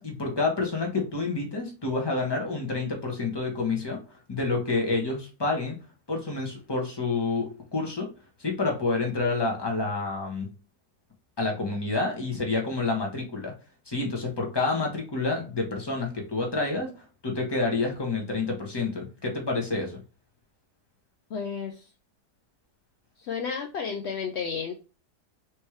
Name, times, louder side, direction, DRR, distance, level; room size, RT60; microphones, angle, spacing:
voice 1, 0.0-4.0 4.3-5.8 6.1-8.1 8.4-10.5 11.4-13.5 13.9-16.9 17.2-20.0, left 3 dB, 15° left, 0 dB, 1.2 m, -28 dB
voice 2, 21.3-21.9 23.2-24.7, left 6 dB, 65° left, 4 dB, 0.6 m, -32 dB
4.6 x 3.3 x 3.1 m, 0.34 s
omnidirectional pair, 1.7 m